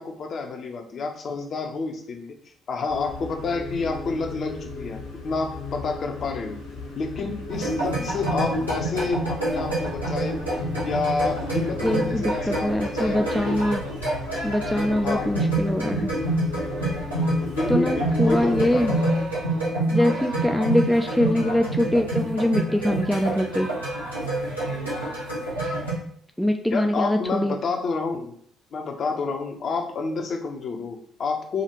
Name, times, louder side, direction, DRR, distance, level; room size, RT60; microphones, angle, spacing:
voice 1, 0.0-2.4 2.7-6.6 7.0-10.4 10.8-13.5 15.0-15.3 17.4-19.2 24.7-25.0 26.7-28.4 28.7-31.6, left 4 dB, 45° left, 4 dB, 0.6 m, -29 dB
sound 1, 2.9-19.0, left 4 dB, 80° left, 1.1 m, -36 dB
sound 2, 7.5-25.9, right 1 dB, 90° right, 1.0 m, -27 dB
voice 2, 11.8-13.8 14.4-16.1 17.7-18.9 19.9-23.7 26.4-27.5, left 1 dB, ahead, 4 dB, 0.3 m, -23 dB
5.0 x 2.4 x 2.9 m, 0.63 s
figure-of-eight pair, 45°, 0 cm